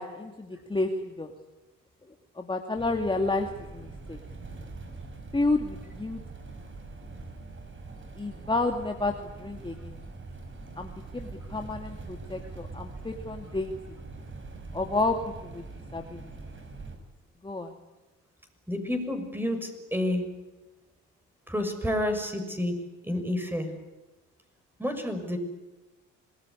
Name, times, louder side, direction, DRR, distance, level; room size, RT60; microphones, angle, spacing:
voice 1, 0.0-1.3 2.4-4.2 5.3-6.2 8.2-10.0 10.8-14.0 14.7-15.6 15.9-16.3 17.4-17.8, left 2 dB, 15° left, 3 dB, 2.3 m, -30 dB
sound 1, 2.7-17.0, right 3 dB, 40° right, 5.8 m, -43 dB
voice 2, 18.7-20.3 21.5-22.8 23.0-23.7 24.8-25.4, left 1 dB, 5° right, 6 dB, 6.4 m, -29 dB
26.5 x 20.0 x 9.9 m, 1.1 s
cardioid pair, 90°, 30 cm